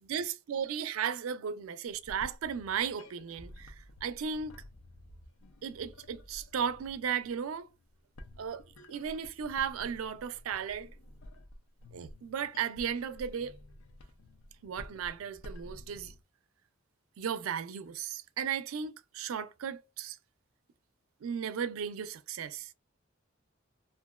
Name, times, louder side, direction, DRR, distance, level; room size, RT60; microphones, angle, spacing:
voice 1, 0.0-4.5 5.6-7.7 8.4-8.6 8.9-10.9 11.9-13.5 14.6-16.1 17.2-20.2 21.2-22.7, right 7 dB, 90° right, 0.4 m, -35 dB
sound 1, 1.8-16.2, left 1 dB, 80° left, 0.5 m, -52 dB
2.8 x 2.5 x 2.3 m
head